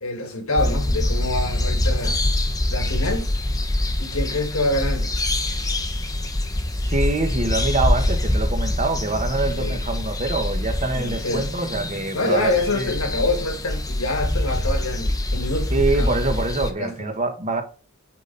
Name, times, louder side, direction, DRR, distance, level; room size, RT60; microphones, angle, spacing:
voice 1, 0.0-2.2 2.7-3.3 4.0-5.1 9.6-9.8 10.9-11.5 12.1-16.1 16.8-17.1, left 2 dB, 75° left, 1.8 m, -26 dB
sound 1, 0.6-16.7, left 1 dB, 15° left, 0.8 m, -24 dB
voice 2, 6.8-12.9 15.7-17.6, right 2 dB, 35° right, 1.2 m, -25 dB
8.9 x 4.2 x 3.9 m
head